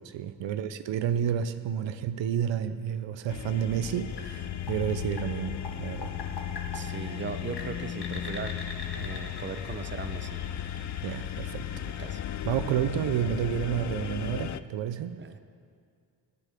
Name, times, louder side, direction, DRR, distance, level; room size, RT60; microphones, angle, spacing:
voice 1, 0.0-6.1 11.0-11.7 12.4-15.2, right 9 dB, 80° right, 11 dB, 0.6 m, -30 dB
sound 1, 3.3-14.6, left 10 dB, 45° left, 0.4 m, -36 dB
sound 2, 4.2-14.0, left 3 dB, 60° left, 1.7 m, -45 dB
voice 2, 6.7-8.6 8.9-10.4 11.7-12.2 15.2-15.4, right 5 dB, 25° right, 10 dB, 0.7 m, -38 dB
20.0 x 8.4 x 3.6 m, 2.2 s
cardioid pair, 80°, 44 cm